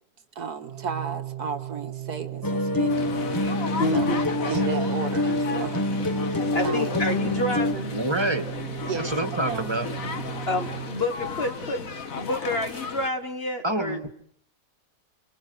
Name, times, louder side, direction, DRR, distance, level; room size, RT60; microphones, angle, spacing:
voice 1, 0.4-3.4 3.9-4.1 4.4-5.8 6.6-6.9 7.5-7.6 8.9-9.7, right 6 dB, 65° right, 7 dB, 1.9 m, -34 dB
Organ, 0.6-11.5, right 14 dB, 40° right, 1.7 m, -36 dB
sound 1, 2.4-7.7, left 2 dB, 15° left, 1.0 m, -26 dB
sound 2, 2.9-13.1, left 5 dB, 50° left, 2.0 m, -35 dB
voice 2, 3.8-4.2 6.3-7.9 10.5-14.0, left 1 dB, 35° left, 7 dB, 1.6 m, -29 dB
voice 3, 7.9-8.5 8.9-9.9 13.6-14.1, right 1 dB, 15° right, 9 dB, 2.0 m, -27 dB
28.5 x 22.0 x 8.1 m, 0.62 s
omnidirectional pair, 1.8 m